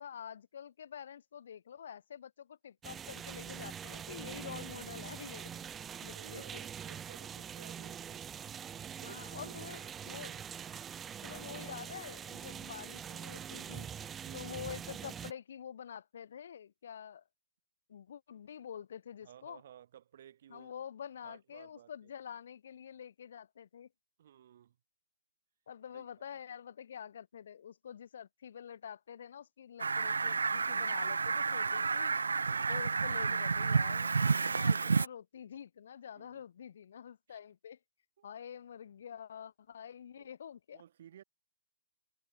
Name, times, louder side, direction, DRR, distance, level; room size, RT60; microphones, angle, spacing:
voice 1, 0.0-5.5 6.0-6.4 9.0-10.3 11.2-13.9 14.3-17.2 17.9-19.6 20.5-23.9 25.7-32.1 32.7-37.8 38.2-40.8, left 8 dB, 55° left, 2.7 m, -47 dB
sound 1, 2.8-15.3, right 8 dB, 15° right, 1.1 m, -44 dB
voice 2, 5.5-8.3 9.0-9.8 10.1-10.4 14.2-14.6 19.2-20.7 21.2-22.1 24.2-24.8 25.9-26.4 32.3-32.7 36.1-36.4 37.3-37.4 38.2-38.3 40.2-40.3 40.7-41.2, right 10 dB, 50° right, 5.1 m, -57 dB
Fowl, 29.8-35.1, right 4 dB, 70° right, 0.7 m, -30 dB
figure-of-eight pair, 125°, 0 cm